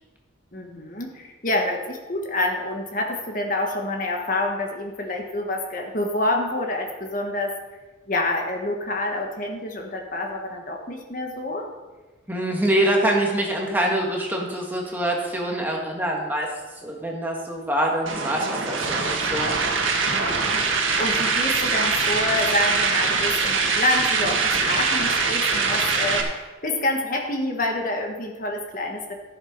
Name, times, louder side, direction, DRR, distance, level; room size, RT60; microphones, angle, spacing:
voice 1, 0.5-7.5 8.1-11.7 20.1-29.1, left 2 dB, 45° left, 2 dB, 1.4 m, -27 dB
voice 2, 12.3-16.5 16.8-19.5, right 1 dB, 10° right, -1 dB, 1.7 m, -25 dB
sound 1, 18.1-26.2, right 4 dB, 85° right, 1.8 m, -23 dB
14.5 x 7.4 x 5.2 m, 1.2 s
head